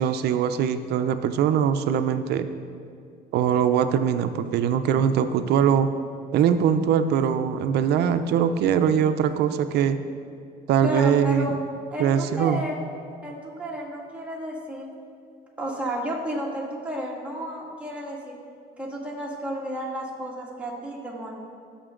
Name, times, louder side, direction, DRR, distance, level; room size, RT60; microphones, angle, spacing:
voice 1, 0.0-2.5 3.3-5.9 6.3-10.0 10.7-11.5 12.0-12.6, right 8 dB, 75° right, 10 dB, 0.6 m, -22 dB
voice 2, 10.8-11.5 11.9-12.8 13.2-14.9 15.6-18.4 18.8-21.4, right 1 dB, 5° right, -4 dB, 2.1 m, -32 dB
16.0 x 6.8 x 3.8 m, 2.3 s
cardioid pair, 110°, 17 cm